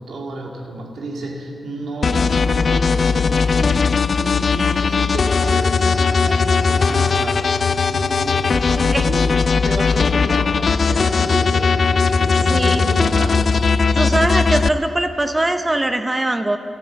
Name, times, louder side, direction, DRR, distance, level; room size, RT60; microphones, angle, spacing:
voice 1, 0.0-7.5 7.9-13.7, right 2 dB, 85° right, 1 dB, 2.3 m, -31 dB
sound 1, 2.0-14.7, left 5 dB, 50° left, 0.4 m, -18 dB
voice 2, 12.5-12.9 14.0-16.6, right 1 dB, 15° right, 8 dB, 0.6 m, -21 dB
13.0 x 13.0 x 7.2 m, 2.3 s
wide cardioid pair, 130°, 0 cm